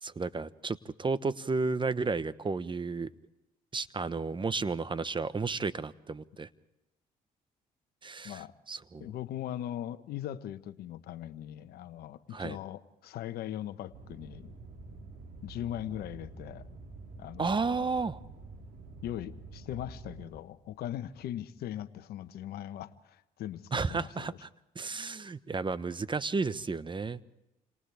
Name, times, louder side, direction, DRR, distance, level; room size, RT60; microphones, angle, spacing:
voice 1, 0.0-3.1 3.7-6.5 8.0-9.1 12.3-12.6 17.4-18.2 23.7-24.5 24.7-27.2, right 4 dB, 30° right, 15 dB, 1.1 m, -32 dB
voice 2, 9.0-14.5 15.4-16.7 17.2-17.8 19.0-24.4, left 12 dB, 75° left, 12 dB, 1.1 m, -40 dB
sound 1, 13.9-21.3, right 3 dB, 70° right, 4.0 m, -48 dB
29.0 x 26.5 x 3.5 m, 0.93 s
supercardioid pair, 60°, 16 cm